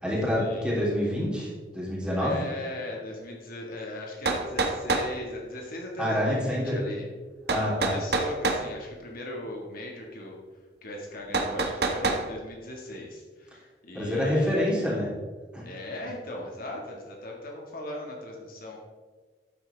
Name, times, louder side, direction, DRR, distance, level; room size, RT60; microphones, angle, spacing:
voice 1, 0.0-2.4 6.0-6.7 7.5-8.0 13.9-15.1 15.5-15.6, equal, 5° right, -6 dB, 3.4 m, -27 dB
voice 2, 2.2-7.1 7.5-10.4 10.8-15.0 15.6-18.8, left 1 dB, 55° left, -1 dB, 1.9 m, -38 dB
sound 1, 3.7-3.8 4.3-5.1 7.5-8.6 11.3-12.2, right 3 dB, 65° right, 1.2 m, -26 dB
12.0 x 9.0 x 3.5 m, 1.5 s
head